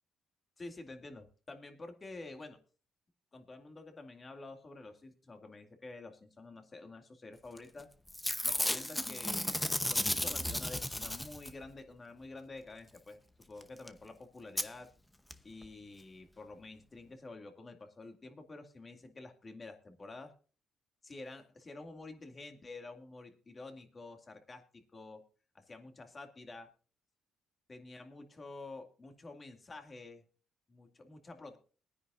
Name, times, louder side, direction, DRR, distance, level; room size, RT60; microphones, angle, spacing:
voice 1, 0.6-2.6 3.3-7.9 8.4-9.6 9.9-14.9 15.4-20.3 21.0-25.2 25.5-26.7 27.7-30.2 30.7-31.6, left 2 dB, 30° left, 5 dB, 2.3 m, -49 dB
Packing tape duct tape / Tearing, 7.6-7.8 8.1-11.7 13.6-13.7 13.9-14.0 14.6-14.7 15.3-15.4 15.6-15.7, left 1 dB, 10° left, 0.9 m, -34 dB
22.0 x 9.9 x 2.6 m, 0.38 s
cardioid pair, 90°, 0 cm